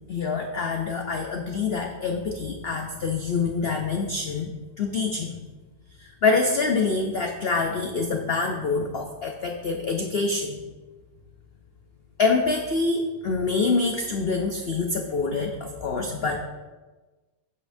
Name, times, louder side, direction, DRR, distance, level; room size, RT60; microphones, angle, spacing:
voice 1, 0.1-4.5 4.8-5.3 6.2-10.6 12.2-16.5, left 4 dB, 85° left, 3 dB, 0.5 m, -26 dB
8.6 x 8.2 x 2.6 m, 1.2 s
omnidirectional pair, 1.8 m